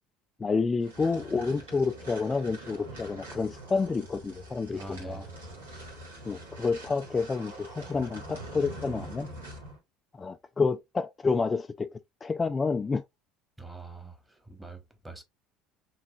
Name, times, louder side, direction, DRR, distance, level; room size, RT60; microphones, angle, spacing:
voice 1, 0.4-5.2 6.2-9.3 10.1-13.0, left 4 dB, 25° left, 0.3 m, -29 dB
sound 1, 0.8-9.8, right 1 dB, 85° right, 1.5 m, -44 dB
voice 2, 4.7-5.4 13.6-15.2, right 3 dB, 10° right, 1.2 m, -44 dB
5.7 x 2.4 x 2.4 m
hypercardioid pair, 70°, 0 cm